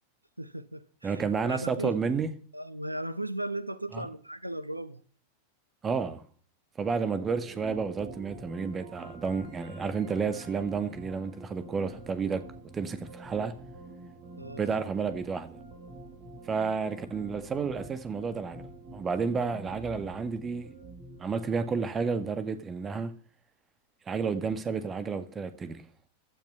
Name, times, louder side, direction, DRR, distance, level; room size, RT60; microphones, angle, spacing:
voice 1, 0.4-1.9 2.5-5.0 14.4-14.8, right 1 dB, 85° right, 0.9 m, -37 dB
voice 2, 1.0-2.3 3.9-4.1 5.8-6.2 6.8-12.5 12.7-13.6 14.6-15.5 16.5-18.7 18.9-20.7 21.2-23.1 24.1-25.9, right 5 dB, 20° right, 1.9 m, -31 dB
sound 1, 7.3-21.8, right 2 dB, 40° right, 7.5 m, -47 dB
16.0 x 11.5 x 5.7 m
figure-of-eight pair, 90°, 0 cm